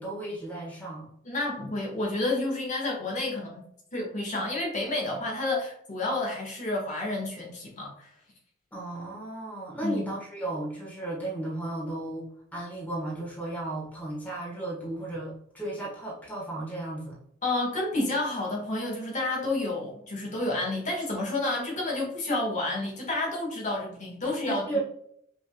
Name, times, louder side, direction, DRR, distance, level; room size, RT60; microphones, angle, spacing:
voice 1, 0.0-1.1 8.7-17.2 24.4-24.8, right 2 dB, 10° left, -4 dB, 1.5 m, -34 dB
voice 2, 1.2-3.6 3.9-8.1 9.8-10.1 17.4-24.6, left 2 dB, 40° left, -2 dB, 1.5 m, -30 dB
6.2 x 3.5 x 2.3 m, 0.70 s
head